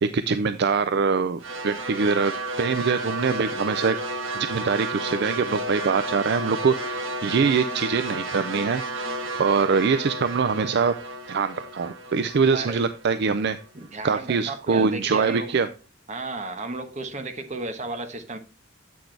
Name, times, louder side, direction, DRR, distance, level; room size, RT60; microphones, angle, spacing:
voice 1, 0.0-4.0 4.3-10.9 11.3-13.6 14.0-15.7, right 5 dB, 55° right, 0.4 m, -24 dB
sound 1, 1.4-13.7, right 2 dB, 75° right, 1.3 m, -32 dB
voice 2, 13.7-15.5 16.1-18.4, right 2 dB, 35° right, 1.1 m, -34 dB
8.5 x 6.0 x 3.3 m
head